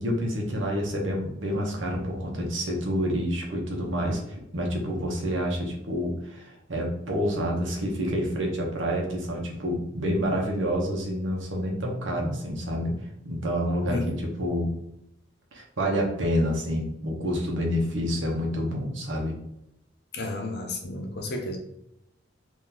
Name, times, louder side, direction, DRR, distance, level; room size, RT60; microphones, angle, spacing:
voice 1, 0.0-4.2 4.5-12.9 13.2-14.7 15.5-19.3, equal, 75° right, 0 dB, 0.9 m, -28 dB
voice 2, 13.9-14.3 20.1-21.6, left 2 dB, 55° left, 3 dB, 0.6 m, -32 dB
3.7 x 2.6 x 2.9 m, 0.83 s
head